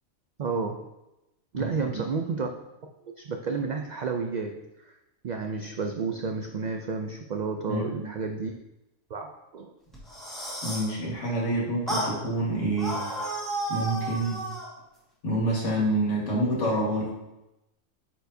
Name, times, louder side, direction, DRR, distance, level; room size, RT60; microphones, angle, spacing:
voice 1, 0.4-0.8 1.5-2.5 3.2-5.0 5.2-8.5 9.1-9.7, right 4 dB, 80° right, 4 dB, 0.4 m, -31 dB
voice 2, 1.5-2.0 7.7-8.1 10.6-13.0 13.7-14.4 15.2-17.1, right 1 dB, 65° left, -4 dB, 2.0 m, -27 dB
sound 1, 9.9-10.9 11.9-12.1 12.8-14.7, right 1 dB, ahead, 1.6 m, -32 dB
9.0 x 4.5 x 2.7 m, 0.94 s
omnidirectional pair, 1.3 m